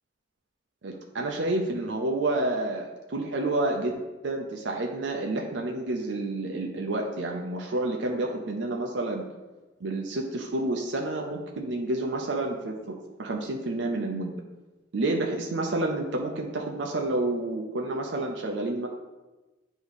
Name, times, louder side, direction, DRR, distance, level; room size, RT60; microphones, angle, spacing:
voice 1, 0.8-9.2 9.8-12.9 13.2-14.4 14.9-18.9, right 2 dB, 65° right, 1 dB, 0.6 m, -29 dB
8.7 x 3.0 x 4.0 m, 1.1 s
head